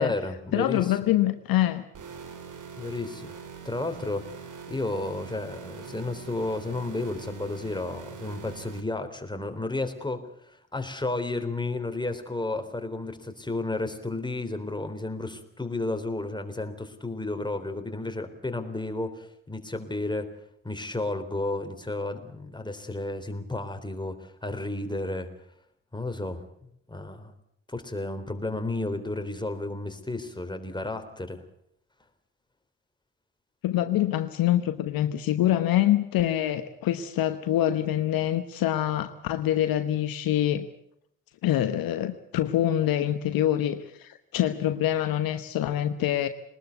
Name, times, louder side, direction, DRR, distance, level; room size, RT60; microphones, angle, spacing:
voice 1, 0.0-1.1 2.8-3.4 3.6-10.2 10.7-20.3 20.6-25.3 25.9-26.5 26.9-27.3 27.7-31.4, left 2 dB, 10° left, 6 dB, 3.6 m, -32 dB
voice 2, 0.5-1.8 33.6-40.7 41.4-46.3, left 12 dB, 65° left, 10 dB, 1.1 m, -25 dB
sound 1, 1.9-8.8, right 6 dB, 55° right, 3.0 m, -43 dB
22.5 x 20.0 x 8.1 m, 0.71 s
hypercardioid pair, 40°, 38 cm